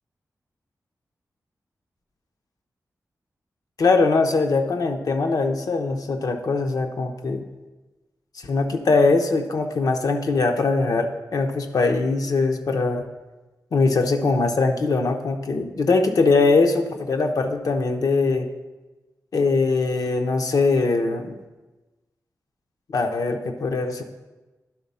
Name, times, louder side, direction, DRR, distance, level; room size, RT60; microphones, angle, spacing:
voice 1, 3.8-7.4 8.4-13.0 13.7-18.5 19.3-21.4 22.9-24.0, left 3 dB, 65° left, 5 dB, 0.8 m, -21 dB
11.0 x 4.0 x 5.5 m, 1.2 s
wide cardioid pair, 155°, 7 cm